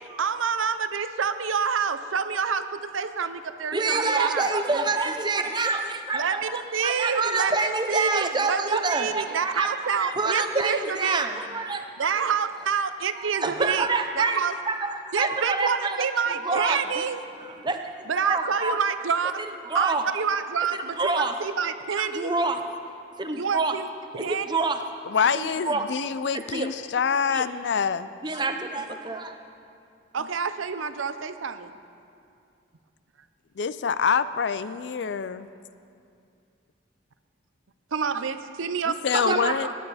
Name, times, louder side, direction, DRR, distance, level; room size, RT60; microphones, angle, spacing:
voice 1, 0.2-4.8 6.1-11.3 12.0-13.9 14.2-14.5 15.1-17.2 18.1-19.4 19.7-22.3 23.3-23.9 24.1-24.6 30.1-31.7 37.9-39.0 39.2-39.5, right 6 dB, 85° right, 11 dB, 0.6 m, -28 dB
voice 2, 3.7-12.2 13.2-14.4 14.7-17.0 17.4-18.8 19.7-20.0 21.0-21.3 22.0-22.6 23.2-23.7 24.3-24.8 25.6-25.9 26.5-26.7 27.3-27.4 28.2-29.3 39.1-39.7, right 3 dB, 20° right, 6 dB, 0.7 m, -27 dB
voice 3, 25.0-28.1 33.6-35.5 38.9-39.7, left 6 dB, 60° left, 15 dB, 0.4 m, -26 dB
20.5 x 10.0 x 4.1 m, 2.5 s
head